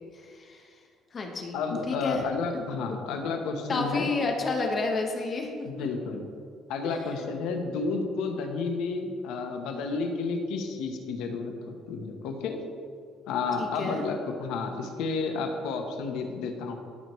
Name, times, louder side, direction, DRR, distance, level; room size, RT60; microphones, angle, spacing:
voice 1, 0.1-0.7 1.1-1.6 1.9-2.2 2.5-2.6 3.7-5.9 6.8-7.0 13.6-14.0, left 3 dB, 30° left, 2 dB, 0.9 m, -31 dB
voice 2, 1.5-4.1 5.6-6.2 6.7-12.6 13.3-16.8, left 4 dB, 80° left, 4 dB, 1.0 m, -31 dB
13.5 x 4.7 x 3.1 m, 2.2 s
cardioid pair, 145°, 0 cm